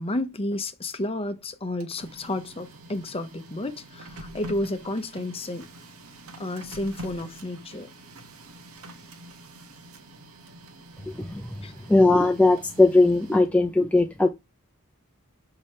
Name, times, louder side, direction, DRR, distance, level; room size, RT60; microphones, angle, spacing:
voice 1, 0.0-5.7 6.4-7.9 11.6-11.7, left 1 dB, 25° left, 0.9 m, -31 dB
Printer, 1.6-13.7, equal, 75° right, 1.5 m, -45 dB
voice 2, 11.1-14.3, left 2 dB, 5° left, 0.5 m, -20 dB
6.9 x 5.6 x 3.2 m
head